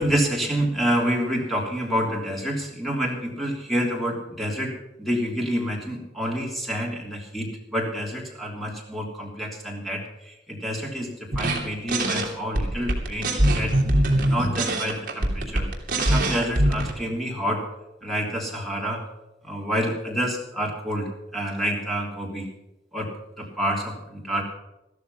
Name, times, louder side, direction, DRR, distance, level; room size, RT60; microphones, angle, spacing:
voice 1, 0.0-15.7 16.0-17.7 18.0-19.0 19.4-22.5 22.9-24.4, equal, ahead, -1 dB, 3.2 m, -28 dB
sound 1, 11.3-11.6 11.9-12.2 12.5-16.9, right 1 dB, 45° right, 2.9 m, -22 dB
14.0 x 13.5 x 5.6 m, 0.95 s
head